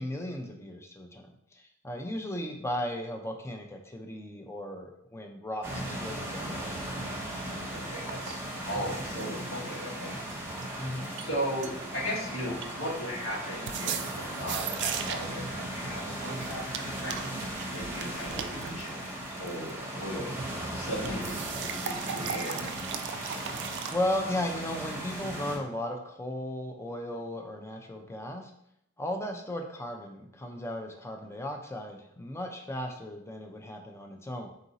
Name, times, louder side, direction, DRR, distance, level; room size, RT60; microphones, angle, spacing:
voice 1, 0.0-6.7 10.8-11.1 21.0-21.3 23.9-28.5 29.0-34.5, left 1 dB, 15° left, 3 dB, 0.4 m, -36 dB
sound 1, 5.6-25.6, right 1 dB, 10° right, 0.8 m, -37 dB
sound 2, 6.9-7.0 8.1-8.4 8.8-9.5 10.3-10.7 11.0-11.3 11.6-12.1 12.4-13.3 13.7-15.4 16.2-19.7 21.1-23.9, right 8 dB, 55° right, 0.3 m, -38 dB
voice 2, 7.4-8.4 8.7-10.2 11.2-17.3 17.7-20.3 20.7-22.6, equal, 85° left, -3 dB, 1.1 m, -37 dB
3.8 x 2.5 x 4.0 m, 0.76 s
head